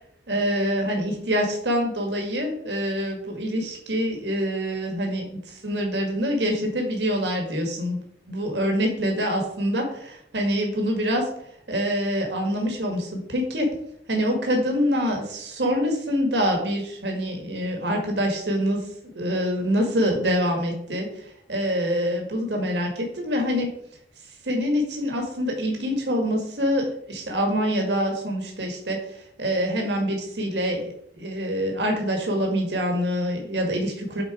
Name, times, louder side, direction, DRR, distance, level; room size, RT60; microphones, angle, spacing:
voice 1, 0.3-8.0 8.3-11.3 11.7-13.7 14.1-18.8 19.2-23.7 24.4-34.2, equal, 75° right, 2 dB, 1.7 m, -25 dB
7.6 x 4.1 x 4.8 m, 0.69 s
head